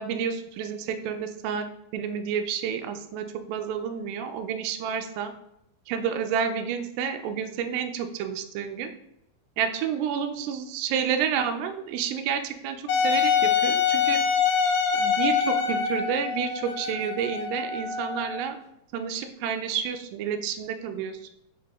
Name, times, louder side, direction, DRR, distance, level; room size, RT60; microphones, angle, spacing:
voice 1, 0.0-1.7 1.9-5.3 5.9-8.9 9.6-14.2 14.9-18.6 18.9-21.2, right 7 dB, 80° right, 7 dB, 2.1 m, -30 dB
Wind instrument woodwind instrument, 12.9-18.5, left 7 dB, 80° left, 2.1 m, -25 dB
5.3 x 2.9 x 3.4 m, 0.81 s
omnidirectional pair, 4.1 m